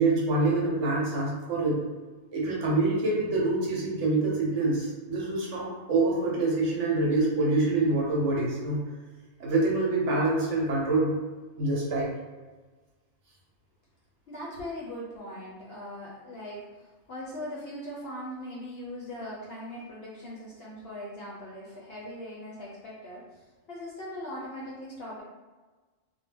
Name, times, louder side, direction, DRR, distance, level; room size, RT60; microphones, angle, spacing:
voice 1, 0.0-1.8 2.3-8.8 9.4-11.2 11.6-12.1, right 2 dB, 65° right, -4 dB, 1.0 m, -26 dB
voice 2, 14.3-25.2, left 1 dB, 60° left, -5 dB, 0.7 m, -40 dB
2.3 x 2.1 x 3.2 m, 1.3 s
omnidirectional pair, 1.4 m